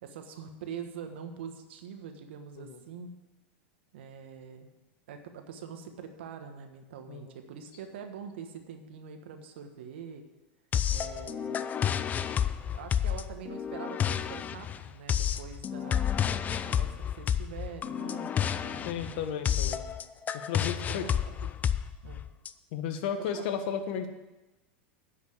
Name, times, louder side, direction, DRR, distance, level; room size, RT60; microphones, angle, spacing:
voice 1, 0.0-3.1 3.9-4.7 5.1-10.2 10.9-11.6 12.7-19.5 20.6-21.3 22.0-22.2 23.2-23.4, right 7 dB, 75° right, 6 dB, 1.4 m, -44 dB
sound 1, 10.7-22.5, left 9 dB, 25° left, 0.4 m, -30 dB
voice 2, 18.8-19.8 20.5-21.0 22.7-24.1, left 8 dB, 60° left, 7 dB, 1.3 m, -33 dB
9.9 x 5.8 x 8.1 m, 1.0 s
hypercardioid pair, 110°, 6 cm